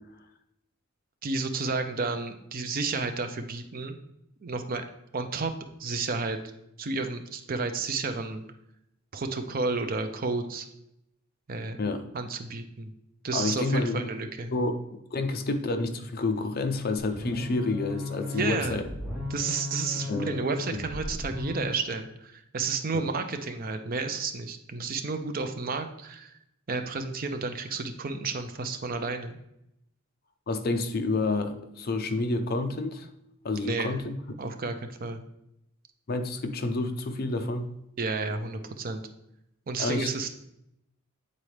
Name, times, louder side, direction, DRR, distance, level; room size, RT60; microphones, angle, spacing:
voice 1, 1.2-3.9 4.4-4.8 5.1-5.5 5.8-6.4 6.8-8.4 9.1-10.7 11.5-11.8 12.1-12.9 13.2-14.5 18.3-18.9 19.3-26.3 26.7-29.4 33.6-34.0 34.4-35.2 38.0-39.0 39.7-40.3, right 4 dB, 45° right, 7 dB, 0.5 m, -31 dB
voice 2, 13.3-14.1 14.5-18.8 20.1-20.4 20.7-20.8 22.9-23.0 30.5-33.1 33.4-34.2 36.1-37.7 39.8-40.1, left 3 dB, 45° left, 8 dB, 0.5 m, -29 dB
sound 1, 17.0-21.9, left 2 dB, ahead, 1.7 m, -36 dB
8.4 x 4.0 x 3.2 m, 0.81 s
head